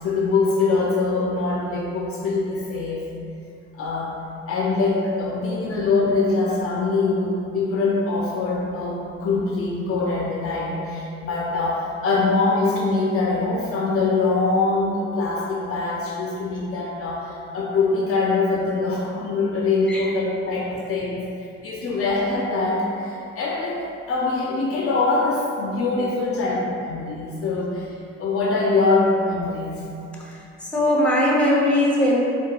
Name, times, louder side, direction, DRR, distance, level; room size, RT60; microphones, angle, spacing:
voice 1, 0.0-3.1 3.7-4.1 4.5-29.8, left 3 dB, 45° left, -3 dB, 0.4 m, -23 dB
voice 2, 30.2-32.2, left 1 dB, 5° left, -5 dB, 0.7 m, -21 dB
3.8 x 2.2 x 2.3 m, 2.6 s
hypercardioid pair, 55°, 34 cm